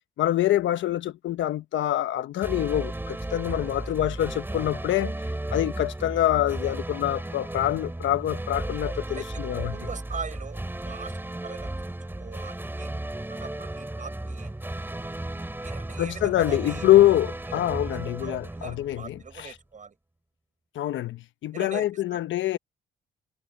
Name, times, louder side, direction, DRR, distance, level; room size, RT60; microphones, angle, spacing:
voice 1, 0.2-5.1 5.5-9.7 16.0-19.5 20.7-22.6, left 13 dB, 75° left, 1.0 m, -25 dB
sound 1, 2.4-19.5, right 1 dB, 10° right, 3.5 m, -34 dB
voice 2, 3.6-4.1 9.1-9.4 9.7-11.2 11.4-12.9 13.3-14.6 15.6-16.9 17.5-17.6 17.9-19.9 21.5-22.2, right 5 dB, 40° right, 7.1 m, -41 dB
cardioid pair, 90°, 20 cm